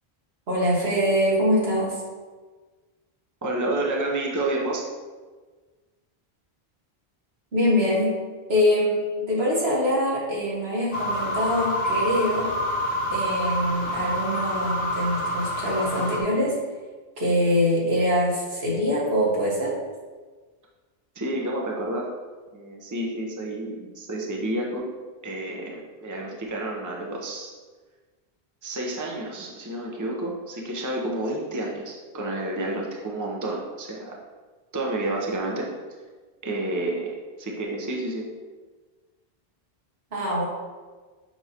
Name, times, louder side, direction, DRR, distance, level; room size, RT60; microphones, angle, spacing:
voice 1, 0.5-2.0 7.5-8.1 8.5-12.5 13.1-16.6 17.2-19.8 40.1-40.5, equal, 75° right, -5 dB, 1.9 m, -24 dB
voice 2, 3.4-4.8 21.1-22.1 22.5-24.9 25.2-27.5 28.6-34.2 34.7-35.7 36.4-38.3, right 1 dB, 20° right, -1 dB, 0.8 m, -30 dB
sound 1, 10.9-16.2, equal, 60° left, 1.0 m, -27 dB
6.9 x 5.5 x 2.9 m, 1.4 s
omnidirectional pair, 1.1 m